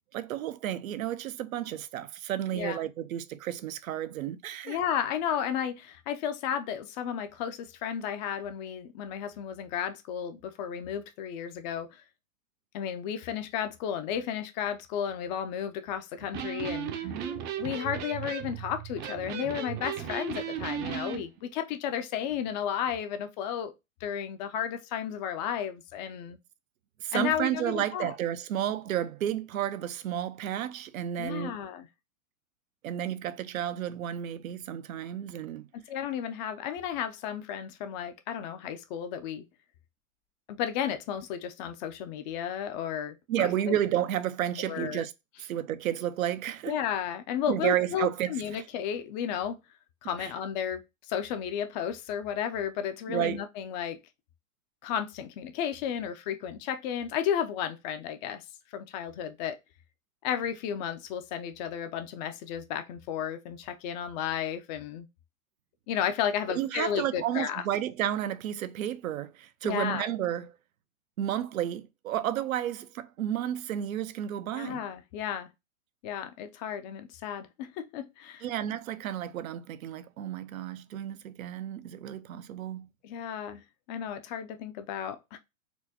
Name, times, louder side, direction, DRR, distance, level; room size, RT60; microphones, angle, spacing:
voice 1, 0.1-4.8 17.0-17.5 27.0-31.5 32.8-35.7 43.3-45.1 45.4-46.8 47.5-48.6 50.2-50.3 53.1-53.4 66.5-70.5 71.2-74.8 78.4-82.9, right 11 dB, 80° right, 0.6 m, -32 dB
voice 2, 2.5-2.8 4.6-12.0 12.7-17.1 17.6-23.7 24.0-26.4 27.1-28.1 31.2-31.9 35.7-39.4 40.5-43.8 44.6-45.0 46.7-49.6 50.0-50.8 51.1-54.0 54.8-58.4 58.7-59.6 60.2-65.1 65.9-67.6 69.6-70.1 74.5-75.5 76.0-78.5 83.0-83.6 83.9-85.4, left 9 dB, 35° left, 0.4 m, -33 dB
Electric guitar, 16.2-21.2, right 8 dB, 25° right, 0.5 m, -36 dB
4.3 x 2.2 x 2.8 m
hypercardioid pair, 125°, 41 cm